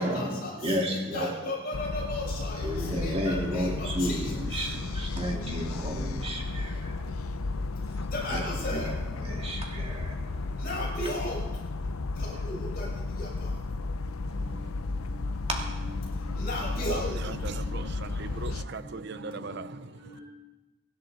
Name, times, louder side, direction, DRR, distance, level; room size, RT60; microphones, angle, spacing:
voice 1, 0.0-0.5 0.8-2.7 3.0-4.2 8.1-8.9 10.6-11.4 12.2-12.9 13.2-13.3 14.4-14.5 15.0-15.1 15.5-15.8 16.3-17.9 19.1-19.6 20.0-20.2, left 1 dB, 45° left, 6.3 m, -36 dB
voice 2, 0.6-1.3 2.6-6.9 8.3-8.4 8.7-8.9 9.2-10.1, equal, 25° right, 2.6 m, -32 dB
sound 1, 1.7-18.6, left 3 dB, 80° left, 0.6 m, -33 dB
voice 3, 16.8-20.2, right 4 dB, 50° right, 0.6 m, -39 dB
24.0 x 10.5 x 4.2 m
head